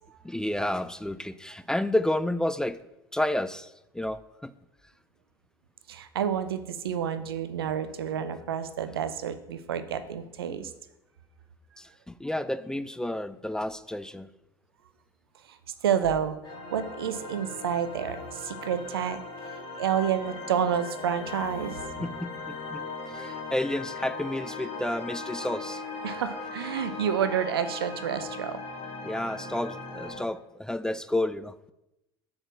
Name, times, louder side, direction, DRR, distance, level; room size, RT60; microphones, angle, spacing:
voice 1, 0.2-2.8 3.1-4.5 10.5-10.7 11.8-14.3 22.0-25.8 29.0-31.5, left 1 dB, 5° left, 13 dB, 0.3 m, -31 dB
voice 2, 5.9-10.7 15.4-15.6 15.8-19.2 19.5-22.0 26.0-28.6, right 8 dB, 75° right, 12 dB, 0.6 m, -29 dB
sound 1, 16.4-30.2, left 3 dB, 35° left, 2.2 m, -38 dB
6.4 x 4.7 x 6.3 m, 0.92 s
figure-of-eight pair, 70°, 13 cm